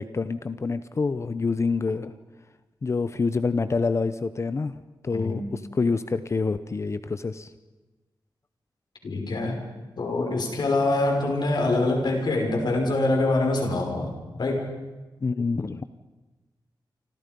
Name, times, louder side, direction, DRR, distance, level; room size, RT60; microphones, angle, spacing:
voice 1, 0.0-2.1 2.8-4.7 5.0-7.5 15.2-15.8, left 4 dB, 35° left, 12 dB, 0.8 m, -27 dB
voice 2, 9.0-9.6 10.0-14.7, left 2 dB, 65° left, 2 dB, 5.8 m, -25 dB
29.0 x 25.5 x 5.4 m, 1.2 s
wide cardioid pair, 165°, 8 cm